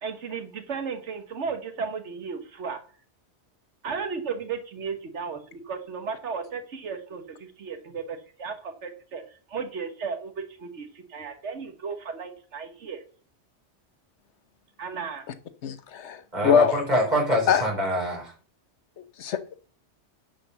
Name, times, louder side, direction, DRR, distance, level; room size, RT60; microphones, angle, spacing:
voice 1, 0.0-2.8 3.8-13.0 14.8-15.2, right 5 dB, 85° right, 8 dB, 1.6 m, -35 dB
voice 2, 15.6-16.7 17.5-17.6 19.2-19.4, left 7 dB, 80° left, 12 dB, 1.2 m, -22 dB
voice 3, 16.3-18.3, equal, 40° right, -1 dB, 4.2 m, -25 dB
10.5 x 5.1 x 6.8 m, 0.42 s
omnidirectional pair, 1.2 m